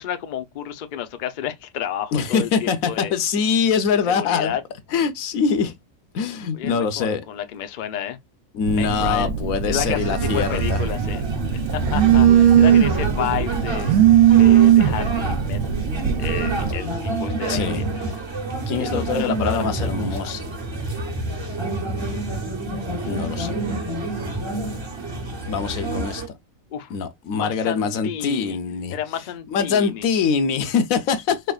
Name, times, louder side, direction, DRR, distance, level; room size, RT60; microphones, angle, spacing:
voice 1, 0.0-3.1 4.1-4.6 6.5-8.2 8.7-9.3 9.7-11.2 11.7-15.6 16.2-18.2 18.8-20.3 23.0-24.0 26.7-27.0 27.3-28.6 28.9-30.0, left 10 dB, 55° left, 0.5 m, -31 dB
voice 2, 2.1-4.6 4.9-5.7 6.1-7.2 8.5-10.8 17.5-17.8 18.7-20.5 23.0-23.6 25.5-26.2 26.9-29.0 29.5-31.4, left 6 dB, 85° left, 1.1 m, -23 dB
Telephone, 8.7-16.7, right 10 dB, 70° right, 1.0 m, -18 dB
sound 1, 10.2-26.3, right 2 dB, 20° right, 1.0 m, -28 dB
4.3 x 3.3 x 2.3 m
omnidirectional pair, 1.4 m